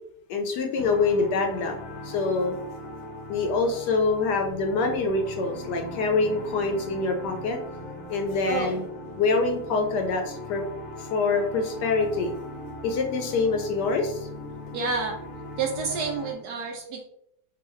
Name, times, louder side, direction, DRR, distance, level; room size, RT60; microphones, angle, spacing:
voice 1, 0.3-2.6 3.3-7.6 8.1-8.9 9.2-10.6 11.0-12.3 12.8-14.3, left 3 dB, 70° left, 4 dB, 1.1 m, -25 dB
sound 1, 0.8-16.3, left 1 dB, 55° left, 0.8 m, -39 dB
voice 2, 14.7-15.2 15.6-17.0, right 4 dB, 70° right, 1 dB, 1.0 m, -29 dB
3.9 x 2.6 x 3.1 m, 0.73 s
omnidirectional pair, 2.0 m